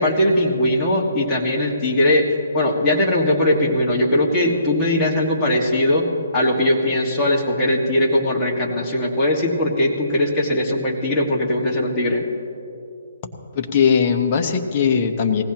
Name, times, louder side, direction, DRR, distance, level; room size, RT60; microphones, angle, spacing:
voice 1, 0.0-2.3 2.5-6.1 6.3-12.2, left 1 dB, 15° left, -4 dB, 1.7 m, -20 dB
voice 2, 13.5-15.4, left 6 dB, 30° left, 4 dB, 1.0 m, -19 dB
19.0 x 16.5 x 3.0 m, 2.8 s
hypercardioid pair, 160°, 0 cm